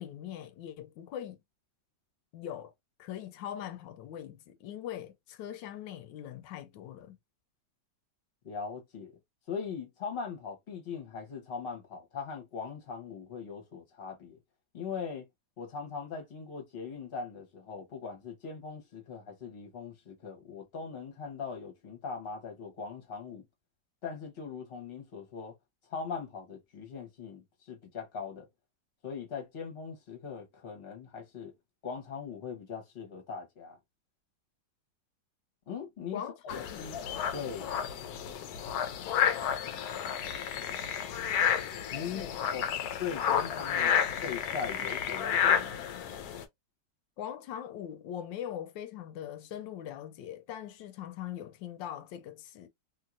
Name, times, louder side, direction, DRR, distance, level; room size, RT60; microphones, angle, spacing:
voice 1, 0.0-1.4 2.3-2.7 3.0-7.2 36.1-36.9 42.1-42.3 47.2-52.7, left 10 dB, 85° left, 1.3 m, -41 dB
voice 2, 8.4-9.2 9.5-14.4 14.7-15.3 15.6-23.4 24.0-25.5 25.9-28.5 29.0-31.5 31.8-33.8 35.7-37.0 37.3-37.7 41.9-42.2 42.5-42.7 43.0-45.8, left 6 dB, 40° left, 1.1 m, -40 dB
sound 1, 36.5-46.4, left 8 dB, 70° left, 1.0 m, -31 dB
3.0 x 2.8 x 2.4 m
omnidirectional pair, 1.9 m